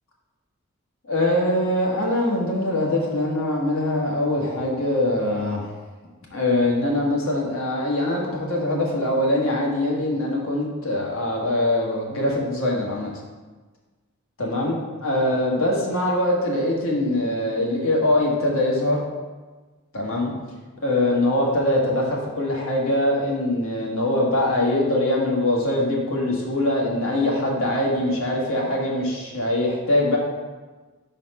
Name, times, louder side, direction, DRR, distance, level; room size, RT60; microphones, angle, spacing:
voice 1, 1.1-5.6 6.3-13.1 14.4-14.8 15.0-19.0 19.9-20.3 20.8-30.2, left 1 dB, 70° left, -2 dB, 1.4 m, -23 dB
5.3 x 4.2 x 5.4 m, 1.3 s
head